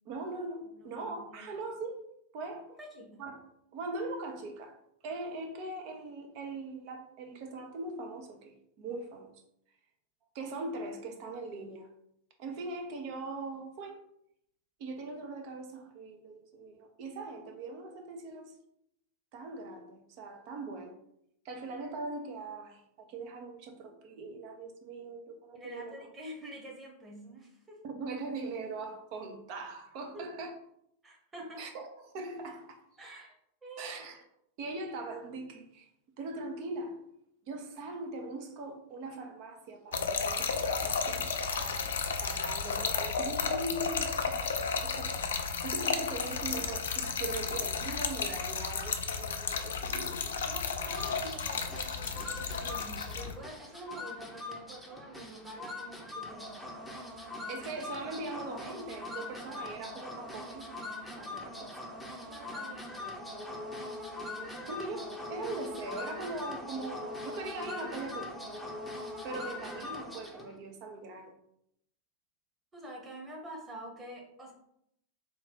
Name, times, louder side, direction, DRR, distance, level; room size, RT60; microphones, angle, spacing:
voice 1, 0.1-2.0 2.3-2.7 3.2-3.3 3.7-4.8 5.0-9.3 10.3-11.9 12.4-14.0 14.8-18.5 19.3-21.0 21.4-26.0 27.8-30.5 31.6-31.9 32.1-32.8 33.8-34.2 34.6-35.9 36.2-37.0 37.5-41.9 42.2-44.5 44.8-50.4 57.5-60.7 61.2-61.7 64.7-68.3 69.2-71.4, right 2 dB, 45° right, 4 dB, 0.6 m, -41 dB
voice 2, 0.6-1.5 2.8-3.2 25.5-27.8 30.1-30.3 31.0-31.6 33.0-33.4 33.6-33.9 50.4-56.7 62.2-62.9 72.7-74.5, right 1 dB, 15° right, -1 dB, 1.2 m, -47 dB
Trickle dribble / Fill (with liquid), 39.9-53.3, left 5 dB, 65° left, 0.4 m, -33 dB
sound 1, 50.8-70.5, left 2 dB, ahead, 0.7 m, -42 dB
3.8 x 2.3 x 3.8 m, 0.74 s
figure-of-eight pair, 90°, 0 cm